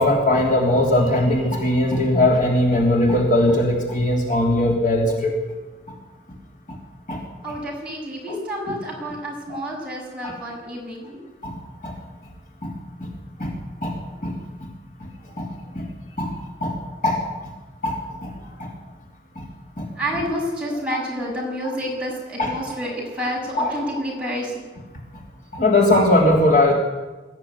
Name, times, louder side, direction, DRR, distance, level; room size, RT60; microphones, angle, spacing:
voice 1, 0.0-5.3 5.9-6.0 6.7-6.8 7.1-7.2 9.5-9.6 10.2-10.3 11.4-11.6 11.8-12.0 12.6-12.7 13.0-13.1 13.4-14.7 15.0-15.1 15.4-15.5 15.7-15.9 16.2-16.3 16.6-17.3 17.8-18.3 18.6-18.7 19.3-19.4 19.8-19.9 22.4-22.5 23.6-23.7 25.5-26.7, left 1 dB, 45° left, 0 dB, 3.4 m, -20 dB
voice 2, 7.4-11.2 20.0-24.6, equal, 5° right, -4 dB, 6.9 m, -29 dB
22.0 x 14.5 x 9.7 m, 1.2 s
head